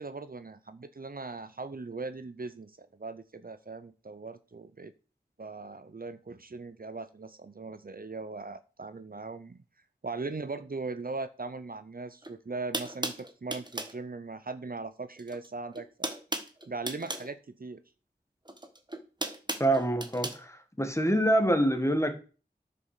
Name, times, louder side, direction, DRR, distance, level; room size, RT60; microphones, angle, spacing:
voice 1, 0.0-4.9 5.4-9.6 10.0-16.1 16.7-17.8, right 3 dB, 55° right, 0.7 m, -39 dB
sound 1, 12.2-12.3 12.7-14.0 15.2-15.5 15.7-17.3 18.5-20.4, right 1 dB, 25° right, 1.3 m, -36 dB
voice 2, 19.6-22.1, right 1 dB, 15° left, 1.7 m, -26 dB
9.4 x 5.6 x 6.7 m
wide cardioid pair, 45°, 18 cm